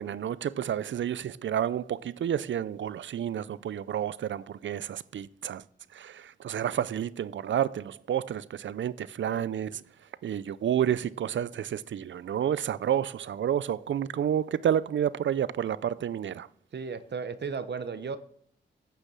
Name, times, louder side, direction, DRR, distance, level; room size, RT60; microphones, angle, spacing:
voice 1, 0.0-5.6 5.9-9.8 10.2-16.5, right 9 dB, 80° right, 0.5 m, -30 dB
voice 2, 16.7-18.2, right 5 dB, 65° right, 0.8 m, -34 dB
9.4 x 6.9 x 7.5 m
cardioid pair, 60°, 19 cm